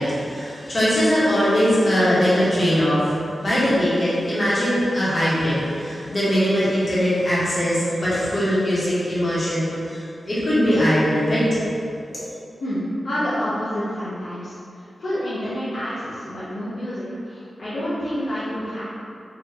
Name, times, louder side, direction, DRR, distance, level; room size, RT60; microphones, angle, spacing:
voice 1, 0.0-11.6, equal, 40° left, -10 dB, 1.3 m, -21 dB
voice 2, 12.6-18.8, equal, 65° left, -11 dB, 0.7 m, -28 dB
4.0 x 2.6 x 2.8 m, 2.5 s
wide cardioid pair, 105°, 0 cm